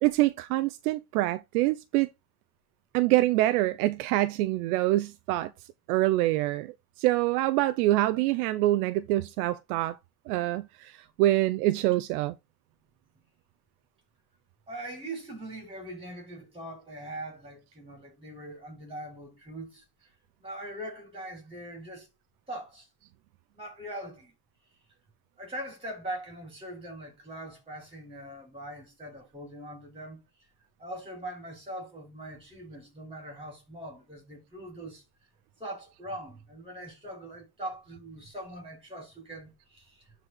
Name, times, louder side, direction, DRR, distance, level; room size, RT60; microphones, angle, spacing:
voice 1, 0.0-2.1 2.9-5.5 5.9-6.7 7.0-10.0 10.3-12.3, right 16 dB, 75° right, 0.8 m, -25 dB
voice 2, 14.7-19.9 20.4-22.1 22.5-22.9 23.5-24.3 25.4-30.5 30.8-35.0 35.6-40.1, right 1 dB, 10° right, 5.6 m, -41 dB
12.0 x 4.5 x 4.0 m
supercardioid pair, 125°, 44 cm